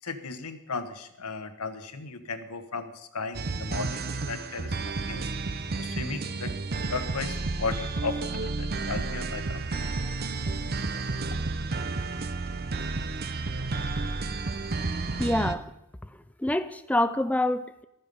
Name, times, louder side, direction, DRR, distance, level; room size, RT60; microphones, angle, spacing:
voice 1, 0.0-5.3 5.8-6.5 6.9-9.9, left 4 dB, 80° left, 9 dB, 1.3 m, -36 dB
sound 1, 3.3-15.5, right 3 dB, 45° right, 0.8 m, -31 dB
voice 2, 15.2-15.7 16.4-17.8, left 1 dB, 5° left, 11 dB, 0.5 m, -26 dB
14.5 x 13.0 x 5.4 m, 0.83 s
head